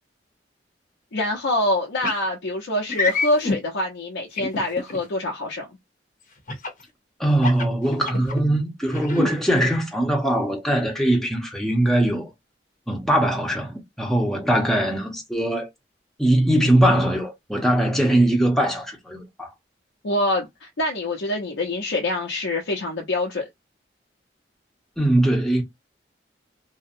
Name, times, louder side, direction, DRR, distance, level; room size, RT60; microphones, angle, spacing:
voice 1, 1.1-5.7 20.0-23.5, left 1 dB, 90° left, 0.6 m, -25 dB
sound 1, 2.0-2.2 2.9-3.6 4.4-5.0 6.5-6.8 7.3-8.4 8.9-9.3, left 3 dB, 45° left, 0.7 m, -26 dB
voice 2, 7.2-12.3 12.9-15.7 16.2-19.5 25.0-25.6, right 1 dB, ahead, 0.7 m, -21 dB
2.7 x 2.0 x 2.5 m
head